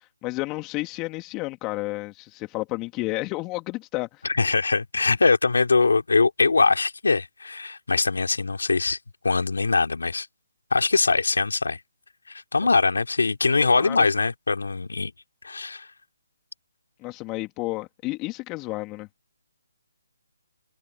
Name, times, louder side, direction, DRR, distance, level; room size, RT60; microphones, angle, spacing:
voice 1, 0.2-4.2 13.6-14.1 17.0-19.1, left 21 dB, 20° left, 2.6 m, -31 dB
voice 2, 4.3-9.0 9.2-10.3 10.7-11.8 12.3-15.1 15.4-15.9, left 4 dB, 75° left, 3.5 m, -22 dB
open air
figure-of-eight pair, 150°, 0 cm